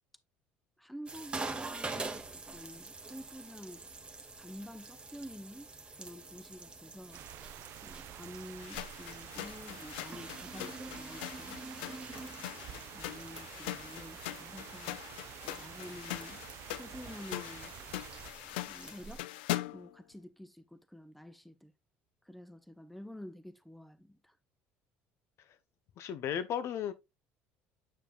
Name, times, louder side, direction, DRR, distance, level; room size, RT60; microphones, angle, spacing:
voice 1, 0.8-3.9 4.4-5.7 6.0-7.2 7.8-11.6 12.1-12.6 12.9-15.0 15.4-16.4 16.7-17.7 18.7-19.3 19.7-21.7 22.3-24.3, equal, ahead, 0.7 m, -49 dB
sound 1, 1.1-19.2, right 3 dB, 20° right, 1.3 m, -46 dB
sound 2, 7.1-18.3, right 13 dB, 55° right, 0.3 m, -50 dB
sound 3, 8.6-19.9, left 16 dB, 85° left, 0.4 m, -42 dB
voice 2, 26.0-26.9, left 9 dB, 60° left, 0.8 m, -34 dB
7.4 x 6.8 x 2.4 m
hypercardioid pair, 75°, 5 cm